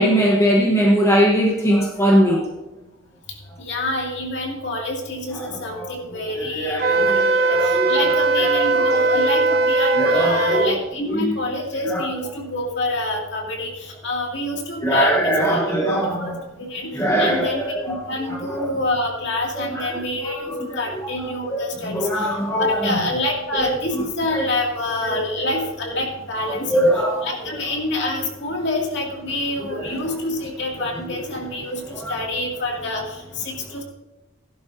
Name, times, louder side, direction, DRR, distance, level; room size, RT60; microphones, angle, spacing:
voice 1, 0.0-2.5 5.8-5.9 6.3-7.9 8.4-8.5 8.9-9.0 10.0-10.7 11.1-11.3 11.9-12.1 14.8-16.4 16.9-17.5 18.6-18.7 19.8-19.9 21.5-22.7 24.3-24.4 25.1-25.2 26.7-27.3, equal, 15° left, 1.1 m, -20 dB
voice 2, 3.3-33.8, left 2 dB, 60° left, 2.4 m, -27 dB
Wind instrument woodwind instrument, 6.8-10.7, right 3 dB, 50° right, 0.7 m, -19 dB
17.0 x 11.0 x 2.7 m
head